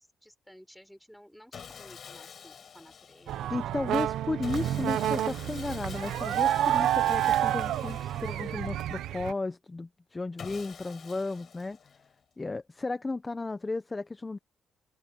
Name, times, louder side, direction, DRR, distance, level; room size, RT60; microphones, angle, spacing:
voice 1, 0.0-3.9, equal, ahead, 6.1 m, -55 dB
Sawing, 1.5-3.6 4.4-9.0 10.4-12.2, left 7 dB, 50° left, 4.8 m, -47 dB
sound 1, 3.3-9.3, right 12 dB, 80° right, 0.9 m, -29 dB
voice 2, 3.5-11.8 12.4-14.4, left 3 dB, 20° left, 0.8 m, -34 dB
cardioid pair, 90°, 0 cm